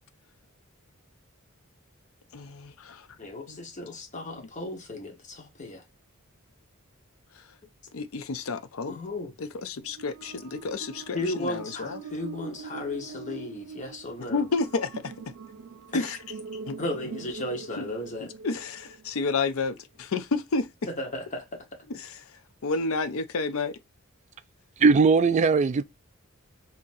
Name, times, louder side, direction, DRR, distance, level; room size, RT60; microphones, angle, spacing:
voice 1, 2.3-3.1 3.5-3.6 4.3-4.5 7.3-7.5 7.9-9.0 9.4-12.0 14.3-15.1 15.9-16.2 16.7-16.8 17.8-17.9 18.2-20.7 21.9-23.8, left 3 dB, 70° left, 0.5 m, -31 dB
voice 2, 3.2-5.8 8.9-9.3 11.1-14.4 15.9-16.1 16.8-18.3 21.0-21.4, left 1 dB, 35° left, 1.2 m, -35 dB
sound 1, 9.8-19.2, right 5 dB, 90° right, 0.5 m, -43 dB
voice 3, 24.8-25.8, right 4 dB, 35° right, 0.3 m, -19 dB
3.9 x 2.9 x 2.6 m
head